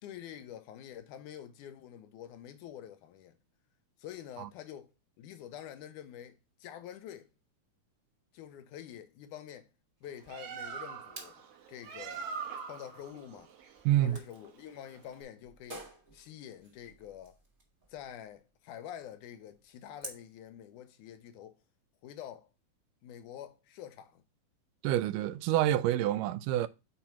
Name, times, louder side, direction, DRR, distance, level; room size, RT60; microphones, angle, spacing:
voice 1, 0.0-3.4 4.0-7.3 8.3-9.7 10.0-11.3 11.7-12.3 12.7-13.5 14.0-15.9 16.1-17.4 17.9-21.6 22.0-22.5 23.0-24.2, left 10 dB, 80° left, 2.2 m, -47 dB
sound 1, 10.0-20.3, right 1 dB, 30° right, 1.0 m, -52 dB
Bird, 10.0-15.2, right 6 dB, 60° right, 2.0 m, -43 dB
voice 2, 13.9-14.2 24.8-26.7, right 13 dB, 85° right, 2.2 m, -27 dB
5.5 x 4.3 x 5.8 m
omnidirectional pair, 3.7 m